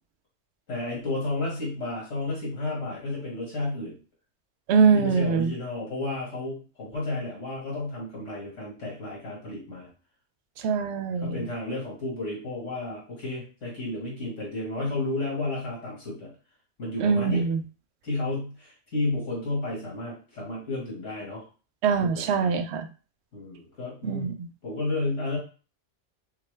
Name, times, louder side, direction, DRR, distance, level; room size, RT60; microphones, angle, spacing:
voice 1, 0.7-4.0 4.9-9.9 11.2-16.3 16.8-17.4 18.0-21.4 22.0-22.5 23.3-24.3 24.6-25.4, left 2 dB, 80° left, -5 dB, 2.1 m, -32 dB
voice 2, 4.7-5.5 10.6-11.4 17.0-17.6 21.8-22.9 24.0-24.5, right 5 dB, 70° right, 9 dB, 0.8 m, -23 dB
5.9 x 2.2 x 3.2 m, 0.35 s
omnidirectional pair, 1.2 m